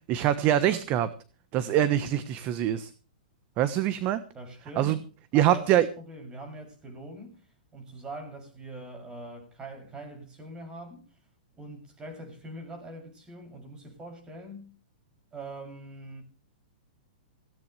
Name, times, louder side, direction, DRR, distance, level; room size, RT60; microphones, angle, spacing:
voice 1, 0.1-1.1 1.5-2.9 3.6-4.2 4.8-5.0 5.3-5.9, right 12 dB, 35° right, 1.2 m, -24 dB
voice 2, 4.3-11.0 11.6-14.7 15.3-16.2, right 1 dB, 20° right, 6.9 m, -43 dB
17.5 x 17.0 x 3.3 m
hypercardioid pair, 130°, 5 cm